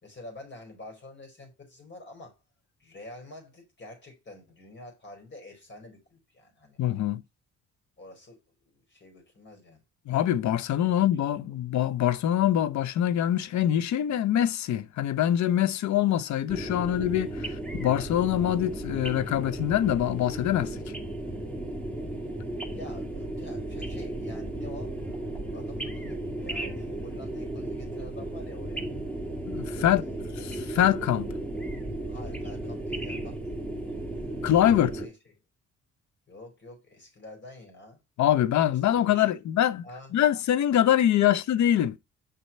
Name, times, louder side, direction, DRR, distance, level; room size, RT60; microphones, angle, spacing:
voice 1, 0.0-2.4 2.8-6.8 8.0-9.8 10.8-10.9 11.3-11.6 22.7-28.9 29.6-30.2 32.1-33.6 33.9-34.0 34.6-35.3 36.3-38.0 38.7-39.3 39.8-40.1 41.2-41.3, left 2 dB, 40° left, 4.8 m, -47 dB
voice 2, 6.8-7.2 10.1-20.8 29.5-30.0 30.4-31.3 34.4-34.9 38.2-39.8 40.1-42.0, left 11 dB, 70° left, 0.7 m, -24 dB
sound 1, 16.5-35.1, right 1 dB, 5° left, 2.1 m, -35 dB
6.8 x 5.7 x 4.2 m
cardioid pair, 90°, 30 cm